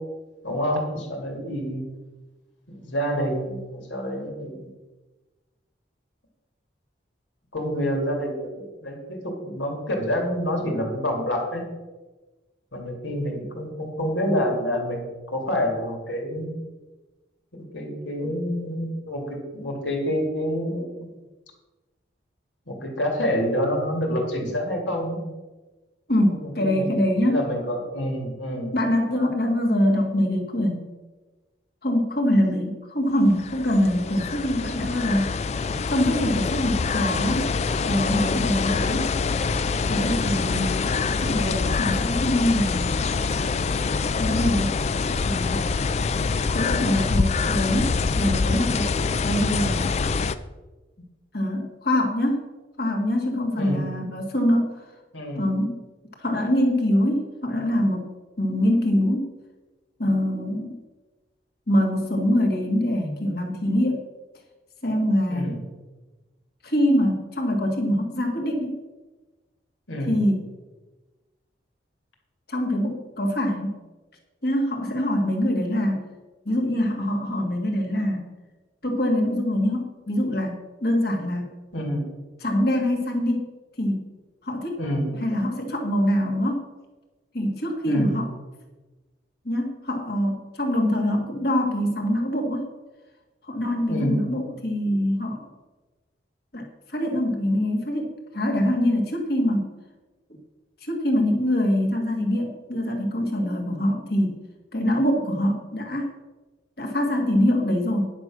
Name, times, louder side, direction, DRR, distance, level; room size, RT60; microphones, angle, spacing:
voice 1, 0.4-1.8 2.7-4.7 7.5-11.6 12.7-16.5 17.5-21.1 22.7-25.2 26.3-28.7 40.8-41.0 53.5-53.8 55.1-55.4 65.3-65.6 69.9-70.2 81.7-82.1 84.8-85.1 87.8-88.2 93.9-94.2, equal, 80° left, 1 dB, 2.6 m, -27 dB
voice 2, 26.1-27.5 28.7-30.9 31.8-35.3 35.9-37.5 37.8-39.1 39.9-40.9 41.2-42.9 44.2-44.8 45.2-45.7 46.5-48.9 49.2-49.9 51.3-52.4 52.8-54.9 55.4-55.8 56.2-58.1 58.4-59.3 60.0-60.8 61.7-64.0 64.8-65.6 66.6-68.8 70.1-70.4 72.5-73.8 74.4-76.0 76.5-78.2 78.8-81.5 82.4-83.5 83.8-84.0 84.4-84.8 85.1-86.7 87.3-88.3 89.4-92.7 93.5-95.5 96.5-99.7 100.8-104.3 104.7-106.1 106.8-108.1, left 1 dB, 55° left, 2 dB, 1.9 m, -24 dB
sound 1, 33.2-50.4, left 4 dB, 35° left, 0.3 m, -25 dB
10.5 x 6.0 x 6.1 m, 1.2 s
head